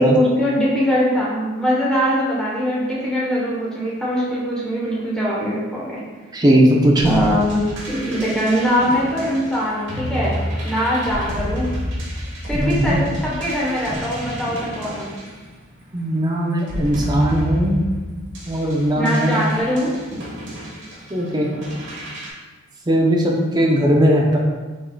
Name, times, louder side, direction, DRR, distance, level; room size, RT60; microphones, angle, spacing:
voice 1, 0.0-6.0 7.0-11.8 12.5-15.1 18.9-19.9, equal, 5° left, -6 dB, 1.0 m, -22 dB
voice 2, 6.3-7.1 12.5-13.0 15.9-17.8 18.5-19.4 21.1-21.5 22.9-24.4, equal, 20° right, -2 dB, 0.6 m, -18 dB
sound 1, 7.0-16.0 16.6-22.3, equal, 55° right, 1.4 m, -30 dB
6.3 x 3.7 x 2.3 m, 1.3 s
head